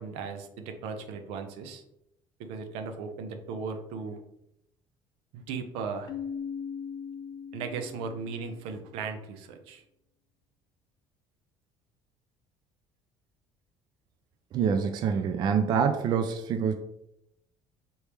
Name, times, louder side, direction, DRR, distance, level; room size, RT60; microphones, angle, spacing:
voice 1, 0.0-1.8 2.4-4.2 5.3-6.1 7.5-9.8, right 5 dB, 85° right, 6 dB, 0.6 m, -37 dB
Keyboard (musical), 6.1-8.7, left 7 dB, 45° left, 0.5 m, -39 dB
voice 2, 14.5-16.8, right 6 dB, 45° right, 7 dB, 0.4 m, -26 dB
4.3 x 3.2 x 3.4 m, 0.80 s
cardioid pair, 130°, 10 cm